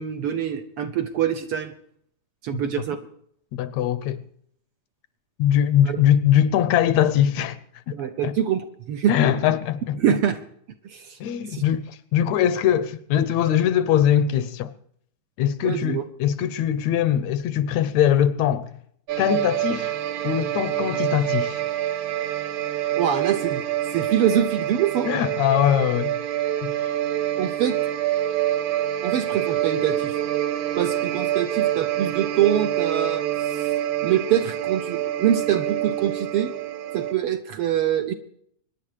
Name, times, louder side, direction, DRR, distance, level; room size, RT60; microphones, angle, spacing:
voice 1, 0.0-1.7 2.4-3.0 5.9-6.0 7.9-9.2 10.0-10.4 10.8-11.2 11.5-11.6 15.6-16.0 22.9-23.6 23.9-25.1 27.4-27.8 29.0-30.1 30.8-33.7 34.0-36.5 36.9-38.1, right 9 dB, 65° right, 1.5 m, -24 dB
voice 2, 3.5-4.2 5.4-7.6 7.9-8.0 8.2-8.4 9.1-10.0 11.2-14.7 15.4-18.8 19.2-20.0 20.2-21.6 25.1-26.1 26.6-26.9, left 10 dB, 75° left, 2.0 m, -21 dB
sound 1, 19.1-37.1, right 12 dB, 85° right, 2.4 m, -26 dB
24.5 x 10.5 x 4.9 m
omnidirectional pair, 3.3 m